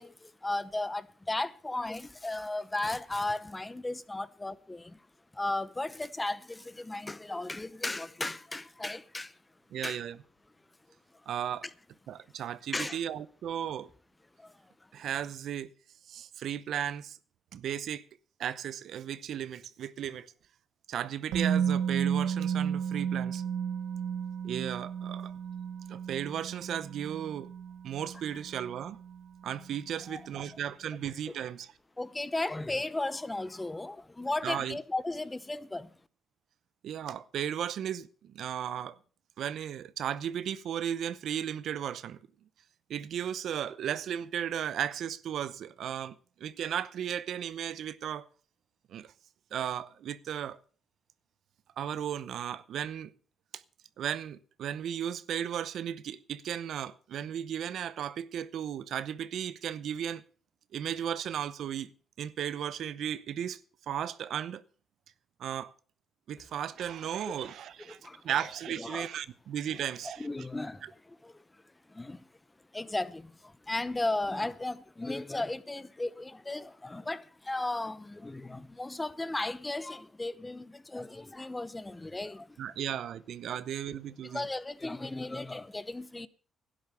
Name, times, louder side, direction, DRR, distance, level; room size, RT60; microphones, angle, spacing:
voice 1, 0.0-5.0 5.3-9.3 9.8-10.0 12.7-13.0 14.4-14.5 30.1-30.4 32.0-35.9 67.9-68.2 68.8-69.1 70.2-70.8 71.2-71.4 71.9-72.3 72.7-82.6 83.5-83.6 84.2-86.3, left 2 dB, 15° left, 0.8 m, -35 dB
voice 2, 9.7-10.2 11.3-11.7 12.1-13.9 14.9-15.7 16.1-17.2 17.5-18.0 18.4-20.3 20.9-23.4 24.4-25.3 25.9-27.5 27.8-29.0 29.4-31.7 34.4-34.8 36.8-39.0 39.4-42.2 42.9-48.3 48.9-49.1 49.5-50.6 51.8-53.1 53.5-53.6 54.0-60.2 60.7-61.9 62.2-63.6 63.9-64.6 65.4-65.7 66.3-70.3 70.8-70.9 82.6-84.5, right 9 dB, 70° right, 0.8 m, -35 dB
Musical instrument, 21.3-29.2 29.5-29.7, right 8 dB, 90° right, 1.5 m, -33 dB
12.0 x 10.5 x 6.8 m
cardioid pair, 90°, 0 cm